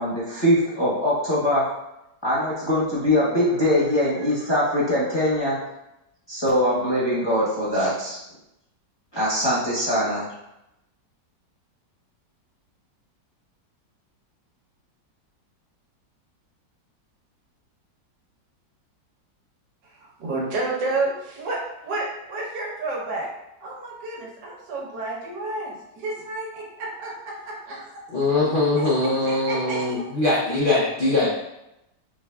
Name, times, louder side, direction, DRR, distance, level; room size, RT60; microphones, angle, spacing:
voice 1, 0.0-1.7 2.2-5.6 6.3-8.2 9.1-10.3, left 1 dB, 20° left, -8 dB, 0.9 m, -22 dB
voice 2, 19.8-23.3 23.6-28.0 28.7-30.0, right 2 dB, 75° right, -2 dB, 1.6 m, -31 dB
voice 3, 28.1-31.3, left 2 dB, 80° left, -6 dB, 0.4 m, -22 dB
4.8 x 3.4 x 2.3 m, 0.89 s
omnidirectional pair, 1.9 m